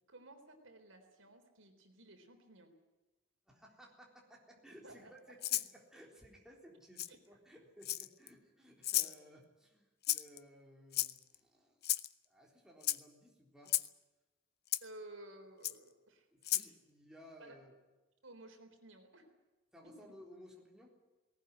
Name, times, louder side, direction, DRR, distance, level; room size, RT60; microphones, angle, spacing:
voice 1, 0.1-2.7 4.8-5.3 7.1-7.2 8.9-9.0 14.8-16.6 17.4-17.6 18.2-19.3 19.8-20.1, right 1 dB, 70° right, 5 dB, 3.9 m, -55 dB
voice 2, 3.5-11.9 12.2-13.7 16.3-17.8 19.7-20.9, equal, 5° right, -2 dB, 3.8 m, -58 dB
Rattle (instrument), 5.4-5.7 7.0-7.1 7.8-8.3 8.8-9.1 10.0-10.4 10.9-11.4 11.8-12.1 12.8-13.0 13.7-13.9 14.7-14.8 15.6-15.7 16.4-16.7, left 15 dB, 50° left, 0.7 m, -33 dB
19.0 x 18.5 x 10.0 m, 1.2 s
head